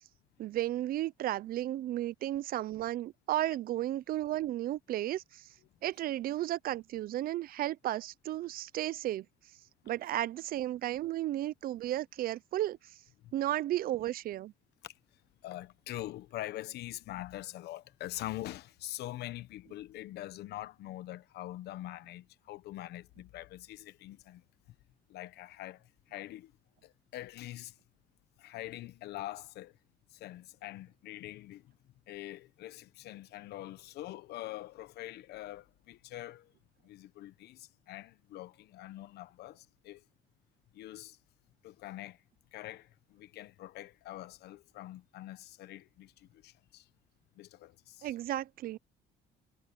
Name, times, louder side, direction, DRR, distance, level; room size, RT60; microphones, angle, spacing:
voice 1, 0.4-5.5 5.8-9.3 9.9-13.0 13.3-14.5 48.0-48.8, right 14 dB, 60° right, 0.5 m, -34 dB
voice 2, 15.4-24.4 25.1-26.5 26.8-27.7 28.4-29.7 30.1-31.7 32.1-36.5 36.8-40.0 40.7-41.2 41.6-42.2 42.5-46.8 47.4-48.1, left 15 dB, 75° left, 1.0 m, -44 dB
cardioid pair, 110°, 17 cm